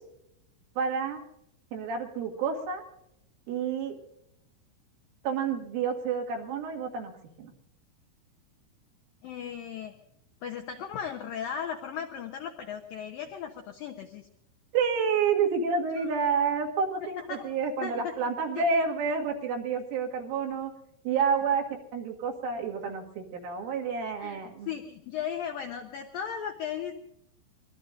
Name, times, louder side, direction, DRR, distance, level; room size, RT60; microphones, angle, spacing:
voice 1, 0.8-1.2 1.7-2.8 3.5-4.0 5.2-7.1 7.4-7.5 14.7-20.7 21.1-21.6 21.9-24.7, right 5 dB, 85° right, 0 dB, 4.5 m, -29 dB
voice 2, 9.2-9.9 10.4-14.3 16.0-16.1 17.0-17.5 17.8-18.2 18.5-18.7 24.2-26.9, left 8 dB, 90° left, 4 dB, 2.0 m, -36 dB
24.5 x 20.5 x 2.6 m, 0.80 s
omnidirectional pair, 5.6 m